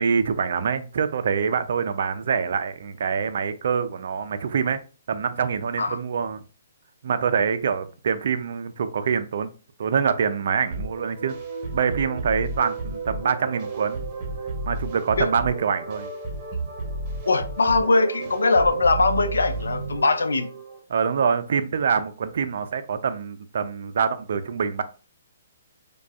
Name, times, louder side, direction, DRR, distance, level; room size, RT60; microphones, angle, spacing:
voice 1, 0.0-4.8 5.1-6.4 7.0-9.5 9.8-11.4 11.7-14.0 14.6-16.1 20.9-24.8, right 6 dB, 60° right, 0.4 m, -25 dB
sound 1, 10.7-20.8, right 3 dB, 30° right, 1.1 m, -32 dB
voice 2, 17.3-20.5, left 3 dB, 85° left, 0.4 m, -21 dB
4.7 x 2.3 x 2.3 m
hypercardioid pair, 140°, 0 cm